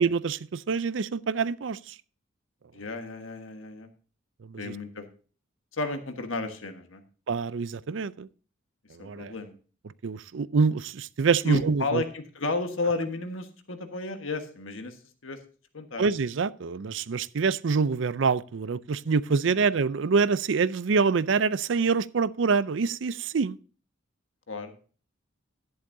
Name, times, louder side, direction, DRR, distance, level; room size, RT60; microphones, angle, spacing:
voice 1, 0.0-1.9 4.4-4.7 7.3-8.3 8.9-9.3 10.0-12.0 16.0-23.6, right 5 dB, 65° right, 0.5 m, -26 dB
voice 2, 2.7-3.9 4.6-5.0 5.7-7.0 9.0-9.5 11.4-15.4 15.7-16.1 24.5-24.7, left 3 dB, 80° left, 1.5 m, -32 dB
12.0 x 10.5 x 2.7 m
head